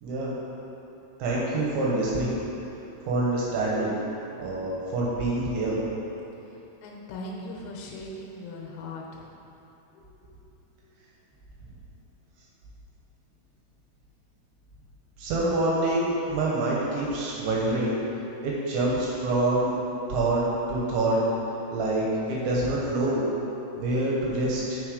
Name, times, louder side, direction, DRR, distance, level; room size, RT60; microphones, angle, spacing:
voice 1, 0.0-0.4 1.2-2.3 3.1-4.0 4.4-5.8 15.2-18.0 18.4-19.7 20.1-20.4 20.7-21.2 21.7-23.2 23.7-24.8, right 2 dB, 75° right, -4 dB, 3.0 m, -26 dB
voice 2, 6.5-9.3 9.9-10.4 10.8-10.9, left 1 dB, 80° left, -1 dB, 3.3 m, -40 dB
7.3 x 6.3 x 4.9 m, 3.0 s
omnidirectional pair, 5.9 m